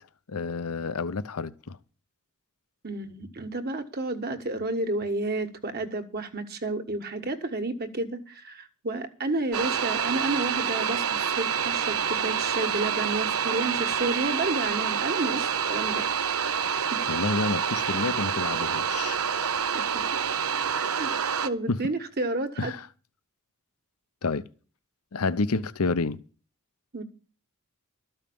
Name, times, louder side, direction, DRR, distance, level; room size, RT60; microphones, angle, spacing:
voice 1, 0.3-1.8 17.1-19.2 21.7-21.8 22.6-22.9 24.2-24.4 25.1-26.2, left 3 dB, 90° left, 0.8 m, -29 dB
voice 2, 2.8-16.1 19.7-19.8 20.8-22.7 26.9-27.0, right 2 dB, 45° right, 1.4 m, -31 dB
sound 1, 9.5-21.5, right 7 dB, 85° right, 0.7 m, -27 dB
13.0 x 5.6 x 8.6 m
head